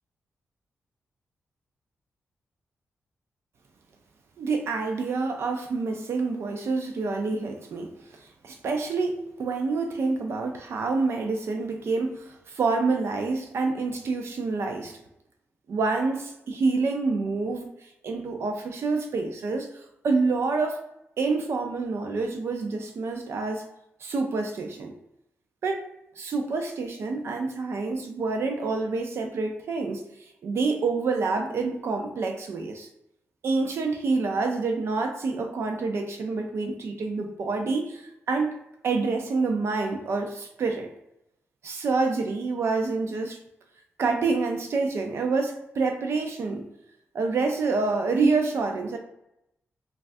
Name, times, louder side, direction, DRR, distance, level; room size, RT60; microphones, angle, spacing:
voice 1, 4.4-15.0 15.7-19.7 20.0-20.8 21.2-23.6 24.0-24.9 25.6-25.8 26.2-30.0 30.4-32.9 33.4-38.5 38.8-40.9 41.6-43.4 44.0-46.7 47.1-49.0, right 3 dB, 65° right, 3 dB, 0.4 m, -27 dB
3.2 x 2.3 x 2.5 m, 0.83 s
wide cardioid pair, 115°, 5 cm